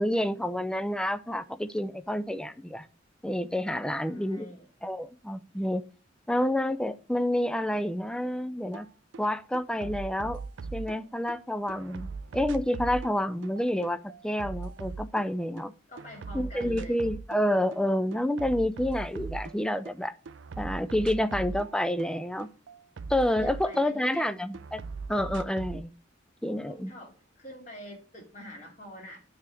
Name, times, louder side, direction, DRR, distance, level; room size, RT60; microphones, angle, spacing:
voice 1, 0.0-2.9 3.2-4.5 4.8-5.8 6.3-8.9 9.2-10.4 10.7-12.1 12.3-15.7 16.3-20.1 20.6-22.5 23.1-24.8 25.1-25.9 26.4-26.9, left 1 dB, 5° left, 0.4 m, -29 dB
voice 2, 4.0-4.7 15.9-17.0 23.4-24.3 26.6-29.2, equal, 40° left, 2.8 m, -46 dB
sound 1, 8.7-8.9 9.1-11.4 11.7-15.7 16.0-17.4 17.7-20.0 20.3-24.2 24.5-25.8, right 4 dB, 75° right, 0.4 m, -39 dB
9.7 x 3.5 x 6.1 m
head